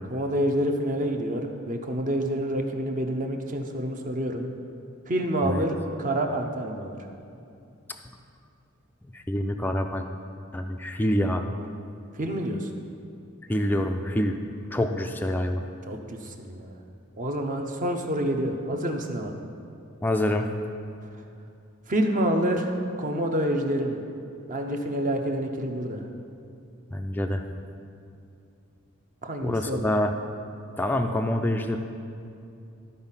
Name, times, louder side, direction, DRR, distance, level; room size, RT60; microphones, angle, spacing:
voice 1, 0.1-4.5 5.1-7.0 12.1-12.7 15.9-16.7 17.2-19.3 21.9-24.0 24.5-26.1 29.2-29.9, right 1 dB, 35° right, 3 dB, 0.7 m, -28 dB
voice 2, 9.1-10.1 10.5-11.4 13.5-14.4 14.7-15.6 20.0-20.5 26.9-27.4 29.4-30.1 30.8-31.8, left 1 dB, 10° left, 4 dB, 0.3 m, -26 dB
12.5 x 4.4 x 5.6 m, 2.5 s
head